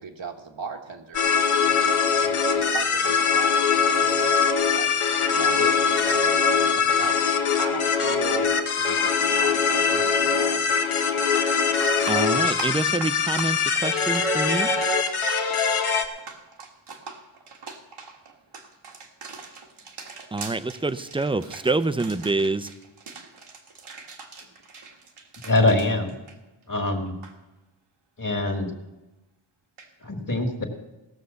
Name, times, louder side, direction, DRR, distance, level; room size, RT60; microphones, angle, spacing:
voice 1, 0.0-4.4 4.7-4.9 5.3-10.7, right 5 dB, 65° right, 2 dB, 1.3 m, -38 dB
sound 1, 1.1-16.0, left 5 dB, 85° left, 1.2 m, -22 dB
sound 2, 10.7-10.8 11.2-26.8 27.1-27.3 29.8-29.9, right 4 dB, 80° right, 1.7 m, -42 dB
voice 2, 12.1-14.7 20.3-22.7, right 2 dB, 10° right, 13 dB, 0.4 m, -26 dB
voice 3, 25.4-26.1 26.7-27.2 28.2-28.7 30.0-30.7, left 2 dB, 40° left, 4 dB, 1.9 m, -23 dB
17.0 x 6.4 x 6.9 m, 1.1 s
wide cardioid pair, 100°, 49 cm